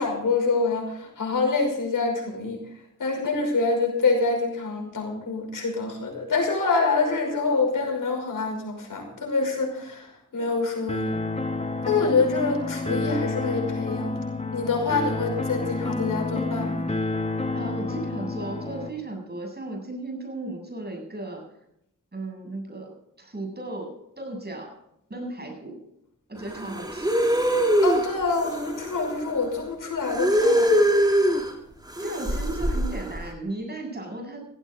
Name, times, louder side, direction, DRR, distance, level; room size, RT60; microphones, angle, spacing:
voice 1, 0.0-2.6 3.0-10.1 10.3-11.1 11.9-14.1 14.5-16.8 27.8-30.7, left 4 dB, 80° left, 2 dB, 5.6 m, -26 dB
sound 1, 10.9-18.9, left 3 dB, 20° left, 2.0 m, -29 dB
voice 2, 17.5-21.4 22.1-24.7 25.1-25.8 26.3-27.1 32.0-34.4, right 2 dB, 30° right, 2 dB, 7.9 m, -35 dB
sound 2, 26.5-29.2 30.0-31.5 31.9-33.2, equal, 15° right, 3.4 m, -22 dB
16.5 x 16.0 x 4.0 m, 0.77 s
cardioid pair, 60°, 32 cm